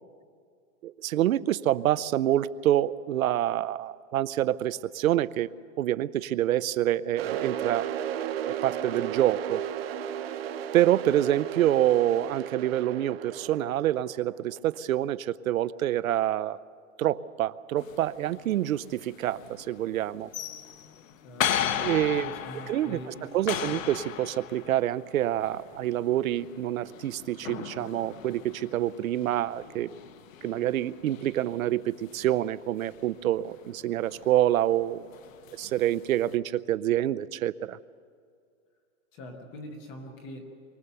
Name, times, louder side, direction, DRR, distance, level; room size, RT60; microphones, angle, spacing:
voice 1, 0.8-5.5 5.8-7.9 8.5-9.6 10.7-16.6 17.0-20.3 21.8-22.3 22.7-29.9 30.4-35.0 35.6-37.8, right 12 dB, 80° right, 17 dB, 0.7 m, -27 dB
sound 1, 7.2-14.8, right 9 dB, 45° right, 0.9 m, -34 dB
sound 2, 17.8-36.3, left 9 dB, 70° left, 1.1 m, -38 dB
voice 2, 21.2-21.7 22.1-23.7 39.1-40.4, left 1 dB, 10° left, 4 dB, 0.6 m, -43 dB
23.5 x 17.5 x 6.9 m, 2.2 s
supercardioid pair, 175°, 41 cm